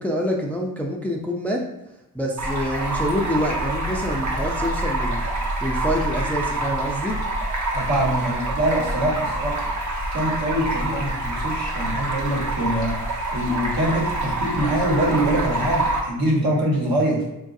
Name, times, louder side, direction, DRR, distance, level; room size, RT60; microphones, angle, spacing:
voice 1, 0.0-1.6 2.1-5.2 5.6-7.2, equal, 5° left, 0 dB, 0.4 m, -26 dB
Stream, 2.4-16.0, right 2 dB, 50° right, 1.0 m, -26 dB
voice 2, 7.7-9.7 10.1-13.0 13.3-17.2, right 1 dB, 65° right, -3 dB, 1.2 m, -24 dB
3.8 x 2.4 x 2.6 m, 0.94 s
cardioid pair, 75°, 38 cm